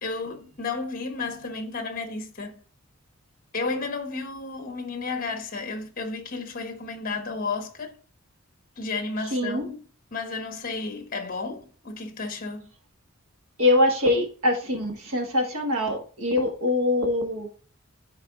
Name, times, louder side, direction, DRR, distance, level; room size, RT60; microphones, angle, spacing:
voice 1, 0.0-2.6 3.5-8.0 8.8-9.8 10.1-12.7, left 3 dB, 45° left, 1.2 m, -32 dB
voice 2, 9.3-9.7 13.6-17.5, left 2 dB, 80° right, 1.6 m, -23 dB
12.5 x 4.7 x 2.5 m
head